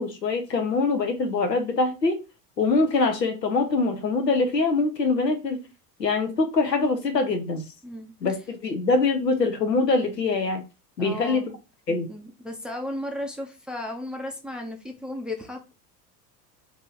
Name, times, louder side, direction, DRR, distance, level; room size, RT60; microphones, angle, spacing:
voice 1, 0.0-2.2 2.6-5.6 6.0-7.6 8.2-10.6 11.0-11.4 11.9-12.1, left 3 dB, 90° left, 0.8 m, -23 dB
voice 2, 7.8-8.1 11.0-11.6 12.1-15.7, left 1 dB, ahead, 0.4 m, -35 dB
2.8 x 2.8 x 3.8 m
figure-of-eight pair, 75°, 48 cm